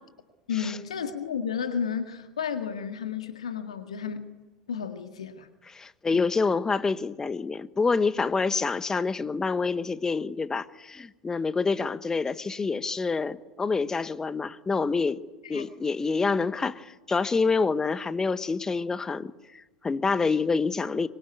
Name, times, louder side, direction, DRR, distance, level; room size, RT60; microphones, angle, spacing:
voice 1, 0.5-4.3 4.7-5.5 6.1-6.2 15.4-15.7, left 7 dB, 70° left, 7 dB, 1.9 m, -32 dB
voice 2, 5.7-15.2 15.5-21.1, left 4 dB, 15° left, 14 dB, 1.3 m, -27 dB
25.0 x 23.0 x 9.5 m, 1.1 s
figure-of-eight pair, 80°, 3 cm